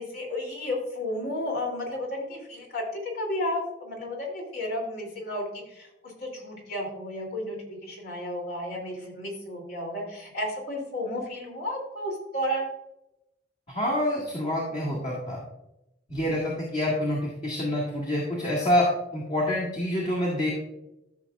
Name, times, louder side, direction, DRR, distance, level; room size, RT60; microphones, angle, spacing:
voice 1, 0.0-12.7, left 1 dB, 60° left, -1 dB, 2.9 m, -33 dB
voice 2, 13.7-15.4 16.1-20.5, left 1 dB, 40° left, -3 dB, 2.0 m, -27 dB
13.5 x 6.5 x 2.4 m, 0.88 s
head